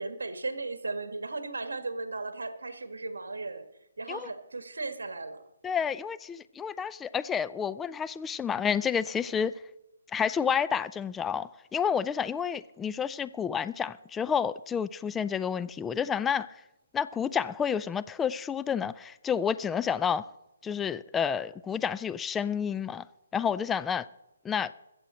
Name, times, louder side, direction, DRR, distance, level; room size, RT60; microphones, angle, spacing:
voice 1, 0.0-3.6 4.0-5.4, right 3 dB, 80° right, 1.5 m, -36 dB
voice 2, 5.6-9.5 10.1-16.5 16.9-20.3 20.6-23.0 23.3-24.1 24.4-24.7, left 7 dB, 10° left, 0.3 m, -30 dB
22.0 x 7.7 x 4.3 m
hypercardioid pair, 155°, 0 cm